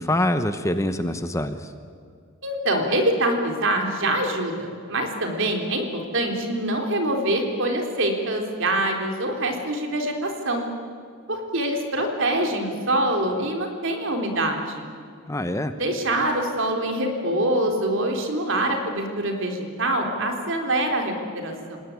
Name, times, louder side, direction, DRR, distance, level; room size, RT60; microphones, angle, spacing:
voice 1, 0.0-1.7 15.3-15.7, left 1 dB, 15° left, 9 dB, 0.9 m, -25 dB
voice 2, 2.4-5.9 6.1-10.7 11.3-14.8 15.8-21.8, right 1 dB, 60° right, 3 dB, 3.8 m, -25 dB
27.5 x 19.5 x 9.6 m, 2.2 s
head